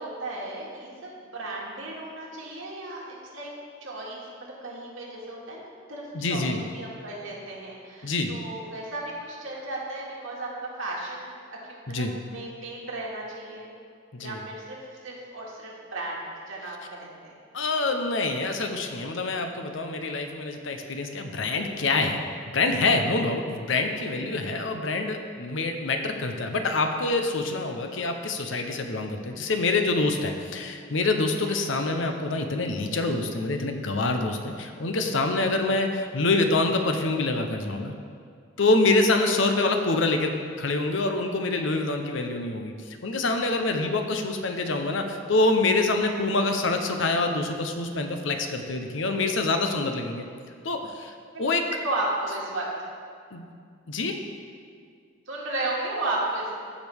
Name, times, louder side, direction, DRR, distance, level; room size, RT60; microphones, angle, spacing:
voice 1, 0.0-3.5 3.8-5.6 5.9-13.7 14.2-14.8 15.0-17.3 31.5-31.6 51.3-52.7 55.3-56.5, right 2 dB, 80° right, -4 dB, 2.0 m, -34 dB
voice 2, 6.1-6.6 8.0-8.3 11.9-12.1 14.1-14.4 17.5-22.2 22.5-37.9 38.6-50.3 50.6-51.1 51.4-51.6 53.3-53.4 53.9-54.1, left 2 dB, 70° left, 5 dB, 0.8 m, -26 dB
15.5 x 5.1 x 3.5 m, 2.2 s
head